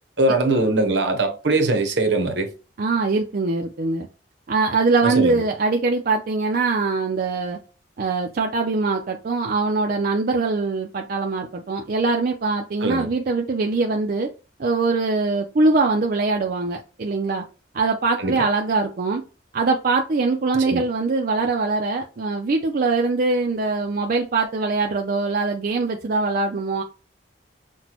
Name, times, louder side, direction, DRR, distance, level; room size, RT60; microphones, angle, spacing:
voice 1, 0.2-2.5 5.0-5.4 12.8-13.1 18.2-18.4 20.7-20.8, right 2 dB, 65° right, 0.8 m, -21 dB
voice 2, 2.8-4.1 4.5-7.6 8.0-14.3 14.6-17.4 17.7-19.2 19.5-26.8, right 3 dB, 50° right, 0.4 m, -22 dB
5.9 x 2.2 x 2.8 m
head